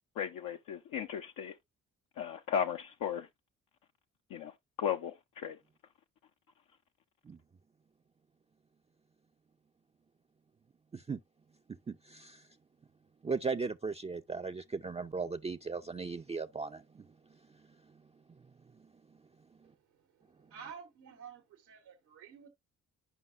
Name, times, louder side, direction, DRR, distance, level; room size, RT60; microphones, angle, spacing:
voice 1, 0.2-1.5 2.2-3.3 4.3-5.6, left 8 dB, 70° left, 0.7 m, -36 dB
voice 2, 11.9-12.4 13.2-17.0, right 4 dB, 20° right, 0.4 m, -37 dB
voice 3, 19.7-22.5, right 7 dB, 85° right, 1.2 m, -51 dB
11.0 x 5.3 x 2.4 m
hypercardioid pair, 45°, 35 cm